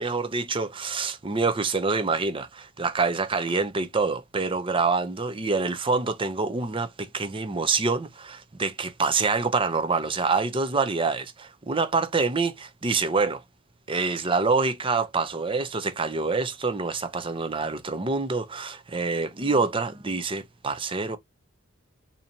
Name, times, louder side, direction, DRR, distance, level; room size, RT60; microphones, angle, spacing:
voice 1, 0.0-13.4 13.9-21.2, right 4 dB, 25° right, 0.6 m, -26 dB
4.0 x 2.8 x 2.8 m
head